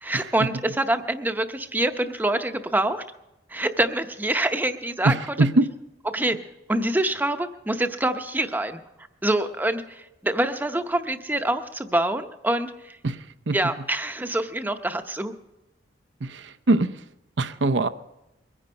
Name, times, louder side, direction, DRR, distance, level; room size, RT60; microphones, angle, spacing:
voice 1, 0.0-3.0 3.5-5.4 6.0-6.4 6.7-8.8 9.2-13.0 13.5-15.3, right 1 dB, 10° right, 8 dB, 0.7 m, -25 dB
voice 2, 5.0-5.6 13.0-13.1 13.5-13.6 16.7-16.9 17.4-17.9, right 2 dB, 85° right, 10 dB, 0.7 m, -20 dB
22.5 x 9.9 x 5.3 m, 0.91 s
head